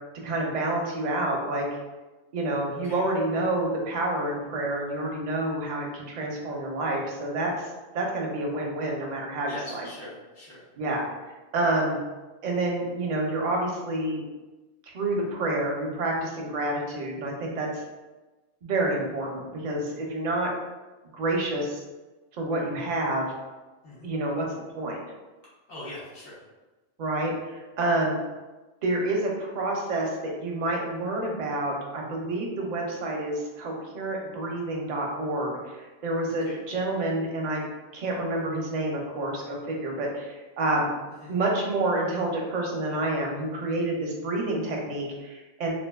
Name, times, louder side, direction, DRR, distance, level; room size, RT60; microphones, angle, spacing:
voice 1, 0.2-1.6 2.3-7.5 7.9-9.9 10.8-11.1 11.5-12.0 12.4-14.2 14.9-17.8 18.6-20.5 21.1-21.8 22.4-23.3 24.0-24.5 24.7-25.0 27.0-28.2 28.8-37.6 37.9-40.9 41.3-45.7, right 2 dB, 55° right, -1 dB, 0.6 m, -28 dB
voice 2, 2.7-3.0 9.5-10.6 23.8-24.1 25.7-26.4 36.4-36.6 41.2-41.3, left 1 dB, 65° left, -8 dB, 1.2 m, -42 dB
2.6 x 2.4 x 2.2 m, 1.2 s
omnidirectional pair, 1.1 m